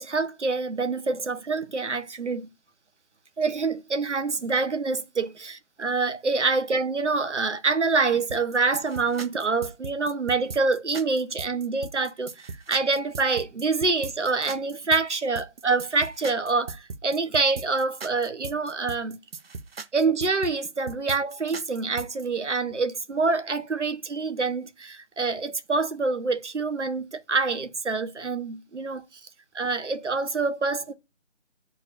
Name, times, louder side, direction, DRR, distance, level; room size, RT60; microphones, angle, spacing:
voice 1, 0.0-2.5 3.4-19.2 19.9-29.0 29.5-30.9, right 4 dB, 75° right, 1.2 m, -26 dB
sound 1, 8.3-22.2, right 4 dB, 55° right, 0.6 m, -39 dB
8.1 x 4.5 x 2.6 m
figure-of-eight pair, 160°, 36 cm